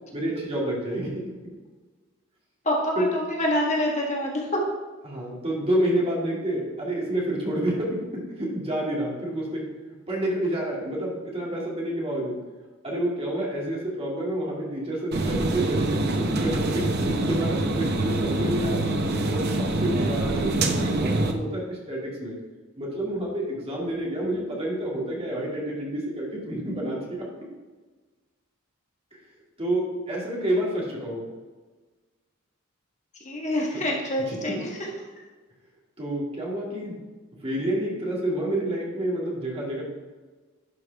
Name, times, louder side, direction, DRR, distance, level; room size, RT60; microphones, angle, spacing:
voice 1, 0.1-1.2 3.0-3.1 5.0-9.7 10.1-12.4 12.8-18.9 19.3-22.4 22.8-27.3 29.1-29.2 29.6-31.3 33.7-33.9 34.2-34.6 36.0-37.0 37.4-39.8, right 1 dB, 30° right, -4 dB, 2.3 m, -29 dB
voice 2, 2.6-4.6 33.2-34.7, left 1 dB, 35° left, -1 dB, 1.5 m, -26 dB
sound 1, 15.1-21.3, right 2 dB, 50° right, 0.9 m, -25 dB
11.0 x 5.4 x 3.5 m, 1.3 s
head